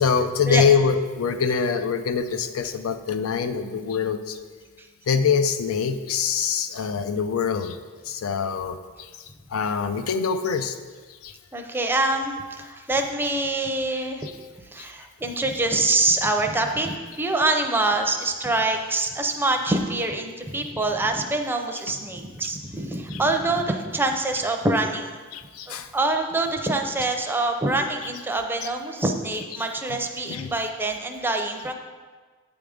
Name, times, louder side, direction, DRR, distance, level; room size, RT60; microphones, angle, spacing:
voice 1, 0.0-4.4 5.1-7.8 8.1-9.1 9.5-10.8 11.2-11.3 23.1-23.2 25.3-25.9 30.3-30.5, left 6 dB, 90° left, 9 dB, 0.4 m, -24 dB
voice 2, 11.5-14.3 14.6-25.2 25.7-31.7, right 2 dB, 10° right, 3 dB, 0.5 m, -25 dB
8.5 x 3.6 x 5.0 m, 1.4 s
head